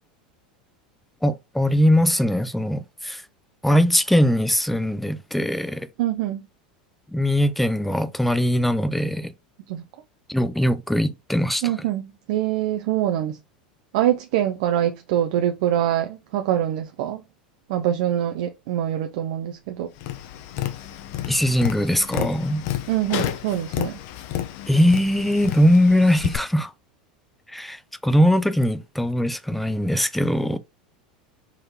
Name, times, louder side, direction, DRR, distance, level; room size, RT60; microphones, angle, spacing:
voice 1, 1.2-3.2 3.6-5.9 7.1-9.3 10.3-11.6 21.3-22.6 24.7-26.7 27.5-30.6, equal, 5° left, 0.4 m, -21 dB
voice 2, 6.0-6.4 9.7-9.8 11.6-13.4 13.9-17.2 17.7-19.9 22.9-24.0, right 11 dB, 60° right, 0.4 m, -24 dB
Tap, 20.0-26.4, left 12 dB, 55° left, 0.6 m, -31 dB
3.6 x 3.2 x 2.8 m
figure-of-eight pair, 85°, 4 cm